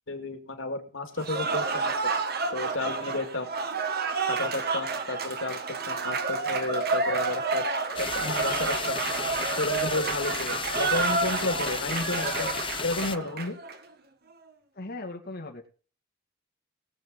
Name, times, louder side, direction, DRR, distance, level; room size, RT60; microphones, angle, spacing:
voice 1, 0.1-2.1 2.5-3.5 4.3-7.6 8.0-9.0 9.6-12.6 12.8-13.6, left 2 dB, 90° left, 5 dB, 2.3 m, -32 dB
Cheering / Applause, 1.2-13.8, right 4 dB, 55° right, 1.7 m, -29 dB
sound 1, 7.9-13.2, left 6 dB, 25° left, 0.7 m, -34 dB
voice 2, 14.7-15.7, left 2 dB, 55° left, 2 dB, 2.2 m, -38 dB
19.5 x 7.8 x 3.9 m, 0.39 s
head